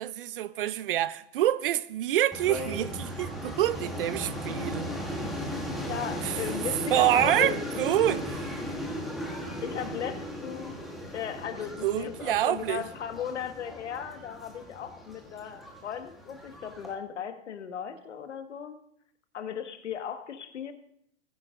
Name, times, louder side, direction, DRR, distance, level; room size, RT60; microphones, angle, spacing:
voice 1, 0.0-4.9 6.2-6.3 6.9-8.5 11.8-12.8, right 12 dB, 50° right, 0.5 m, -27 dB
sound 1, 2.3-16.9, equal, ahead, 1.1 m, -36 dB
voice 2, 5.9-7.7 9.6-10.7 11.1-18.8 19.3-20.7, left 8 dB, 85° left, 1.6 m, -36 dB
19.5 x 9.9 x 2.5 m
hypercardioid pair, 155°, 34 cm